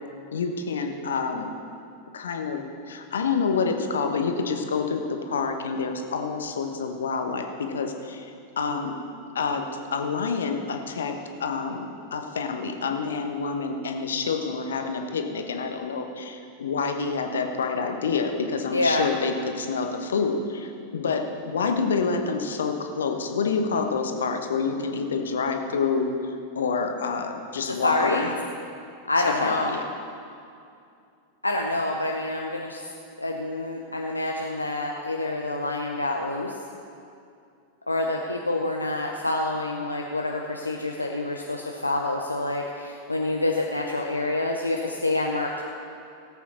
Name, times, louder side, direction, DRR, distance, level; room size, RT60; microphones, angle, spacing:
voice 1, 0.3-1.5 2.1-8.9 9.3-9.6 9.9-11.8 12.1-26.1 26.5-28.4 29.2-29.9, left 5 dB, 65° left, 5 dB, 1.1 m, -28 dB
voice 2, 18.7-19.0 27.8-28.3 29.1-29.8 31.4-32.8 33.2-36.5 37.9-45.7, left 2 dB, 85° left, 0 dB, 0.7 m, -27 dB
17.5 x 8.2 x 4.3 m, 2.5 s
figure-of-eight pair, 90°, 0 cm